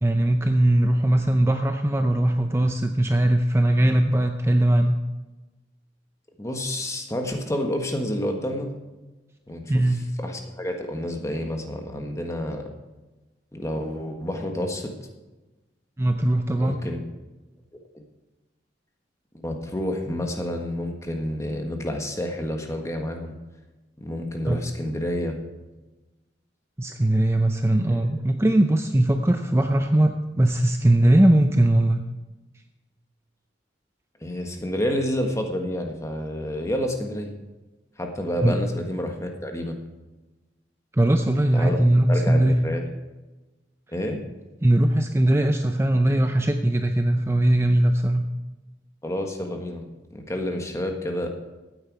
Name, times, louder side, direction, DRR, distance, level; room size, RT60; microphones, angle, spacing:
voice 1, 0.0-5.0 9.7-10.1 16.0-16.8 24.5-24.6 26.8-32.0 38.4-38.6 40.9-42.6 44.6-48.3, right 1 dB, 15° right, 5 dB, 0.6 m, -20 dB
voice 2, 6.4-8.7 9.5-9.6 10.2-12.7 13.5-14.9 16.6-17.0 17.9-18.0 19.4-23.3 24.0-25.4 27.9-28.1 34.2-37.3 38.0-39.8 41.5-41.8 42.1-42.8 43.9-44.2 49.0-49.8 50.1-51.3, left 1 dB, 15° left, 3 dB, 1.5 m, -29 dB
15.5 x 9.2 x 4.8 m, 1.1 s
head